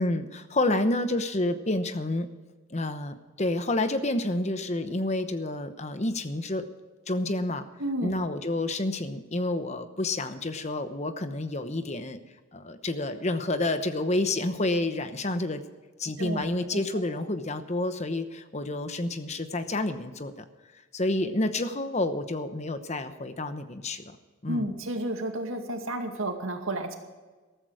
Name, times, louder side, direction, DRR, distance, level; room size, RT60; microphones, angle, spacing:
voice 1, 0.0-2.3 2.7-6.6 7.1-7.7 8.0-12.2 12.5-15.6 16.0-20.4 20.9-24.2 24.4-24.7, left 2 dB, 35° left, 10 dB, 0.9 m, -29 dB
voice 2, 7.8-8.2 16.2-16.4 16.7-16.8 24.5-27.0, right 1 dB, 85° right, 4 dB, 2.1 m, -31 dB
14.0 x 13.5 x 4.9 m, 1.3 s
head